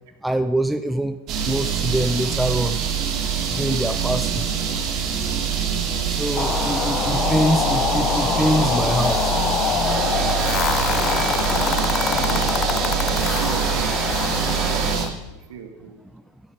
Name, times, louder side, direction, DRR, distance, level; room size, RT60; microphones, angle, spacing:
voice 1, 0.2-2.8 3.5-4.5 6.0-9.3 12.6-12.7, right 1 dB, 5° right, 8 dB, 0.6 m, -24 dB
sound 1, 1.3-15.1, right 7 dB, 45° right, 2.3 m, -24 dB
sound 2, 6.4-15.1, left 9 dB, 40° left, 0.6 m, -25 dB
sound 3, 9.8-15.0, right 3 dB, 30° right, 2.6 m, -29 dB
voice 2, 10.8-11.4 11.9-12.4 13.2-14.0 15.5-16.0, right 8 dB, 70° right, 6 dB, 1.8 m, -36 dB
16.0 x 8.2 x 5.1 m, 0.98 s
hypercardioid pair, 90°, 0 cm